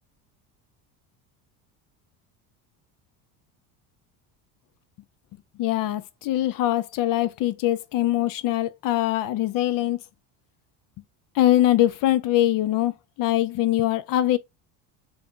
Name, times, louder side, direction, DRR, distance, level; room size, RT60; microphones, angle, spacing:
voice 1, 5.6-10.0 11.4-12.9 13.2-14.4, left 14 dB, 50° left, 0.5 m, -22 dB
3.5 x 2.6 x 3.5 m
supercardioid pair, 90°, 43 cm